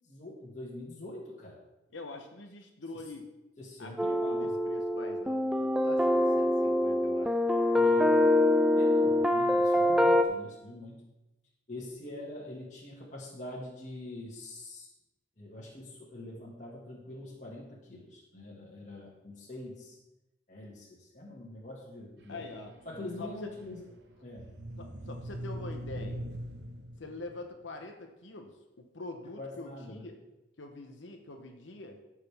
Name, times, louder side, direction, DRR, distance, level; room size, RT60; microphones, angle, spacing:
voice 1, 0.0-1.5 2.9-3.0 3.6-4.6 7.8-8.1 8.7-11.0 11.7-14.9 15.4-20.0 20.5-22.4 22.9-23.9 24.2-24.5 29.4-30.1, left 1 dB, 40° left, -6 dB, 1.9 m, -44 dB
voice 2, 1.9-3.3 3.8-7.3 22.3-22.7 23.2-23.5 24.8-26.2 27.0-30.2 30.6-32.0, left 2 dB, 80° left, 3 dB, 1.0 m, -45 dB
sound 1, 4.0-10.2, left 1 dB, 5° right, 0.4 m, -25 dB
sound 2, 22.2-27.4, equal, 65° right, 0.9 m, -42 dB
15.5 x 6.5 x 3.5 m, 0.97 s
head